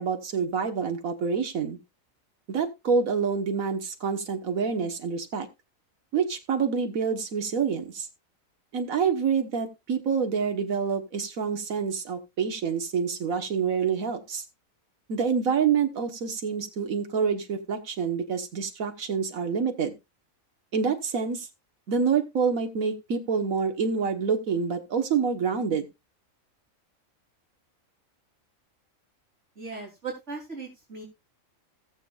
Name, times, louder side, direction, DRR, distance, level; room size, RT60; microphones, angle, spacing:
voice 1, 0.0-1.8 2.5-5.5 6.1-8.1 8.7-14.4 15.1-19.9 20.7-21.4 21.9-25.9, right 6 dB, 85° right, 6 dB, 1.7 m, -27 dB
voice 2, 29.6-31.0, right 4 dB, 55° right, -1 dB, 3.6 m, -38 dB
18.0 x 7.2 x 2.4 m, 0.23 s
omnidirectional pair, 1.4 m